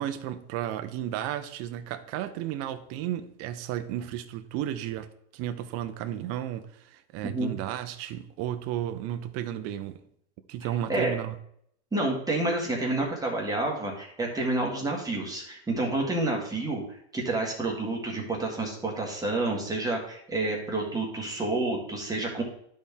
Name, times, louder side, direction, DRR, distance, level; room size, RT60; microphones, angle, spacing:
voice 1, 0.0-5.1 5.3-10.0 10.5-11.4, right 11 dB, 40° right, 9 dB, 0.7 m, -33 dB
voice 2, 10.6-11.1 11.9-16.8 17.1-22.4, right 2 dB, 10° right, -1 dB, 1.6 m, -29 dB
11.5 x 4.3 x 3.5 m, 0.70 s
supercardioid pair, 135°, 35 cm